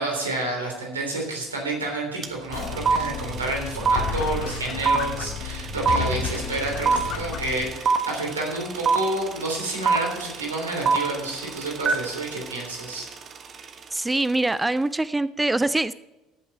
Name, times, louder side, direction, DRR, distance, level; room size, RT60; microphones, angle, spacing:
voice 1, 0.0-13.1, right 2 dB, 80° right, 0 dB, 3.4 m, -29 dB
sound 1, 2.2-2.3 2.5-13.7, right 5 dB, 35° right, 1.3 m, -24 dB
sound 2, 2.5-7.7, left 7 dB, 50° left, 1.7 m, -32 dB
voice 2, 13.9-15.9, right 2 dB, 10° right, 16 dB, 0.4 m, -24 dB
14.0 x 9.3 x 4.4 m, 1.0 s
figure-of-eight pair, 60°, 0 cm